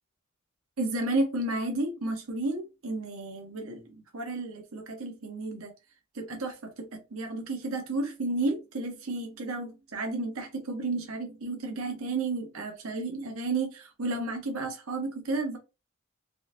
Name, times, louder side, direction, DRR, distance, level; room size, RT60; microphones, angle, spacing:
voice 1, 0.8-5.7 6.1-15.6, right 2 dB, 80° right, 0.8 m, -32 dB
3.7 x 2.5 x 2.5 m
head